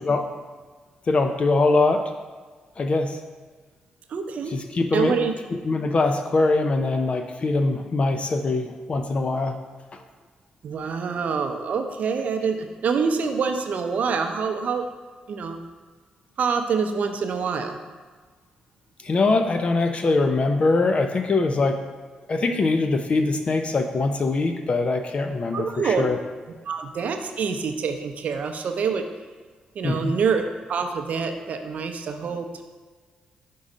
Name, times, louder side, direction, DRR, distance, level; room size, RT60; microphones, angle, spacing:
voice 1, 1.1-2.0 2.8-3.2 4.5-5.1 5.5-9.5 19.0-21.8 22.3-26.2 29.8-30.1, left 3 dB, 45° left, 5 dB, 0.5 m, -22 dB
voice 2, 4.1-4.6 4.9-5.3 10.6-14.8 15.3-15.6 16.4-17.8 25.5-26.1 26.7-29.0 29.8-32.6, right 5 dB, 65° right, 6 dB, 0.5 m, -26 dB
5.3 x 3.8 x 4.9 m, 1.4 s
supercardioid pair, 55°, 3 cm